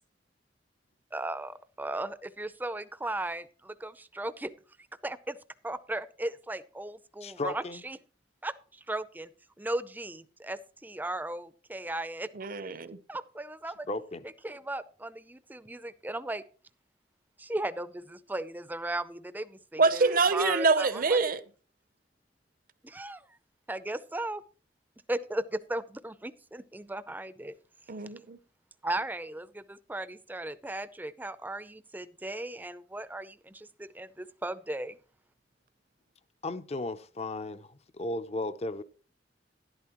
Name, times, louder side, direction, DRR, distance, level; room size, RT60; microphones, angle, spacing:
voice 1, 1.1-4.5 5.0-5.4 5.6-8.0 8.4-9.3 9.6-12.3 13.1-13.9 14.4-16.4 17.4-21.3 22.8-23.2 23.7-24.4 25.1-27.6 28.8-35.0, right 1 dB, 10° right, 0.5 m, -36 dB
voice 2, 7.2-7.8 13.9-14.3 36.4-38.8, left 2 dB, 35° left, 0.6 m, -35 dB
voice 3, 12.3-13.0 19.8-21.4 27.9-28.4, right 4 dB, 55° right, 0.7 m, -25 dB
12.0 x 11.0 x 3.0 m
head